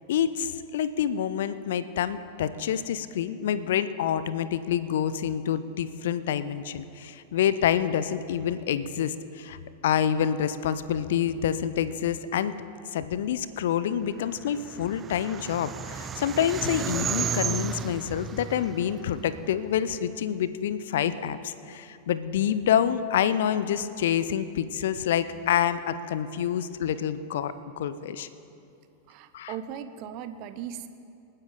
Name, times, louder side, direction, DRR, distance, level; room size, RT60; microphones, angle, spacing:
voice 1, 0.1-9.6 9.8-12.5 12.9-28.3 29.3-29.5, left 9 dB, 60° left, 14 dB, 0.6 m, -27 dB
sound 1, 14.4-19.8, right 7 dB, 25° right, 0.3 m, -33 dB
voice 2, 29.1-30.9, right 9 dB, 40° right, 11 dB, 0.7 m, -38 dB
26.5 x 9.9 x 3.9 m, 2.7 s
figure-of-eight pair, 90°, 0 cm